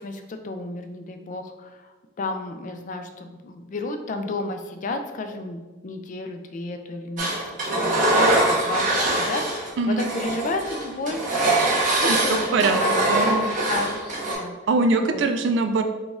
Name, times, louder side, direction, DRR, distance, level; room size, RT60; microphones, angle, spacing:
voice 1, 0.0-11.2 12.0-13.0 13.7-14.0 14.3-14.6 15.0-15.2, left 2 dB, 40° left, 7 dB, 0.3 m, -32 dB
Engine, 7.2-9.7 10.0-14.3, right 2 dB, 45° right, 1.1 m, -23 dB
voice 2, 13.1-13.5 14.7-15.8, right 3 dB, 70° right, 7 dB, 0.4 m, -22 dB
4.0 x 2.3 x 3.6 m, 1.2 s
head